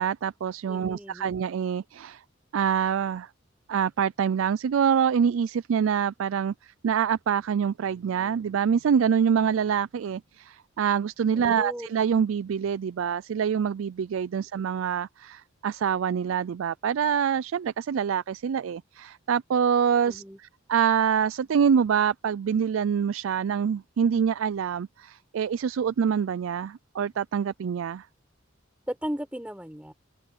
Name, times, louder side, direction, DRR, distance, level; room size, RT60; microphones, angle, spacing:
voice 1, 0.0-2.2 2.5-3.3 3.7-20.2 20.7-28.1, right 7 dB, 80° right, 0.4 m, -25 dB
voice 2, 0.7-1.3 11.3-11.9 20.1-20.4 28.9-29.9, equal, 5° right, 5.4 m, -35 dB
open air
head